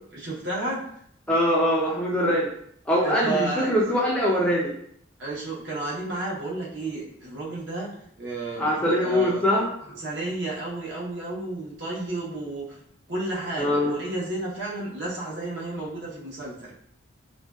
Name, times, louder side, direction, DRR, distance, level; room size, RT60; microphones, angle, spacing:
voice 1, 0.1-0.8 3.0-3.7 5.2-7.9 8.2-9.7 10.0-12.8 13.1-16.7, right 2 dB, 65° right, -5 dB, 0.8 m, -32 dB
voice 2, 1.3-2.5 2.9-4.7 8.6-10.0 13.6-13.9, equal, 5° left, -5 dB, 0.3 m, -23 dB
2.5 x 2.1 x 2.2 m, 0.67 s
head